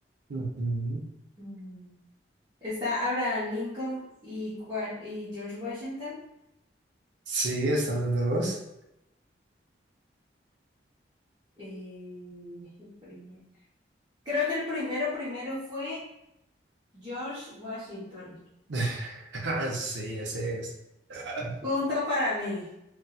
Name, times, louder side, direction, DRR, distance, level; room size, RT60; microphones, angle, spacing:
voice 1, 0.3-1.0 7.3-8.6 18.7-20.7 21.1-21.6, right 2 dB, 75° right, -1 dB, 0.6 m, -30 dB
voice 2, 1.4-1.9 2.6-6.2 11.6-13.4 14.2-16.0 16.9-18.4 21.6-22.7, left 2 dB, 25° right, -13 dB, 1.0 m, -33 dB
4.0 x 2.3 x 2.3 m, 0.86 s
head